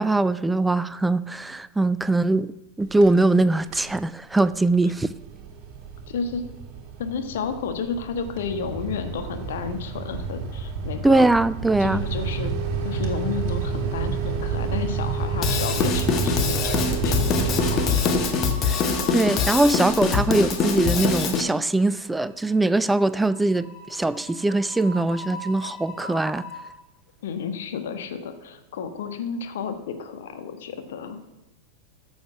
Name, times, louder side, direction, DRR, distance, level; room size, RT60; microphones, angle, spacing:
voice 1, 0.0-2.5 2.8-5.1 11.0-12.0 18.7-18.8 19.1-26.4, right 2 dB, 5° right, 0.4 m, -21 dB
sound 1, 2.8-3.4 3.7-4.0 4.4-18.7, right 5 dB, 40° right, 2.2 m, -29 dB
voice 2, 6.1-6.4 7.0-11.3 11.8-12.5 12.8-18.1 27.2-31.2, left 6 dB, 60° left, 1.3 m, -32 dB
sound 2, 14.6-15.3 15.6-15.9 17.1-26.6, left 2 dB, 10° left, 5.1 m, -42 dB
Drum kit / Drum, 15.4-21.4, left 5 dB, 30° left, 1.4 m, -23 dB
13.5 x 7.1 x 6.1 m
figure-of-eight pair, 90°, 0 cm